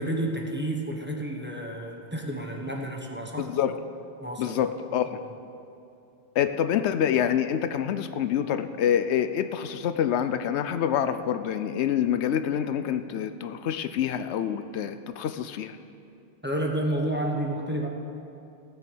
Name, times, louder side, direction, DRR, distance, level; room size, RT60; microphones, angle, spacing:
voice 1, 0.0-3.5 4.2-4.6 5.1-5.2 16.4-17.9, right 1 dB, 10° right, 0 dB, 1.2 m, -30 dB
voice 2, 3.4-3.8 4.4-5.2 6.4-15.8, left 9 dB, 80° left, 11 dB, 0.9 m, -26 dB
17.0 x 6.9 x 7.0 m, 2.6 s
omnidirectional pair, 1.1 m